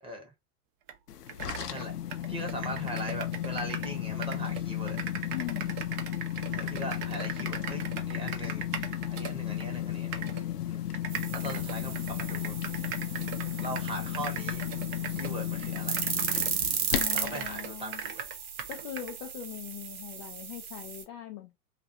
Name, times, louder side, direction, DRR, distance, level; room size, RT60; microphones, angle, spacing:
voice 1, 0.0-0.3 1.7-5.0 6.5-12.6 13.6-14.6 15.1-16.0 17.1-18.3, right 1 dB, 10° right, 1.0 m, -40 dB
sound 1, 0.9-1.0 1.3-4.0 4.2-9.7 10.1-10.4 10.9-16.6 16.9-19.1, right 8 dB, 40° right, 0.7 m, -39 dB
sound 2, 1.1-17.4, left 12 dB, 80° left, 0.6 m, -34 dB
voice 2, 5.3-5.8 16.9-18.0 18.7-21.6, left 13 dB, 30° left, 0.4 m, -41 dB
sound 3, 11.1-21.0, right 7 dB, 70° right, 0.9 m, -36 dB
2.4 x 2.2 x 2.7 m
hypercardioid pair, 105°, 46 cm